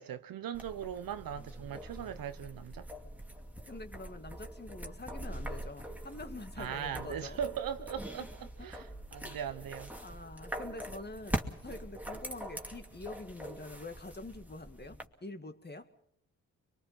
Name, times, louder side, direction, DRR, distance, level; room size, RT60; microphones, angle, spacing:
voice 1, 0.0-2.9 6.6-9.9, right 9 dB, 70° right, 0.9 m, -39 dB
sound 1, 0.5-15.1, right 1 dB, 5° right, 2.5 m, -43 dB
voice 2, 3.7-7.4 7.9-8.5 9.2-9.4 10.0-15.9, left 2 dB, 30° left, 2.2 m, -46 dB
23.0 x 23.0 x 5.8 m
supercardioid pair, 45°, 35 cm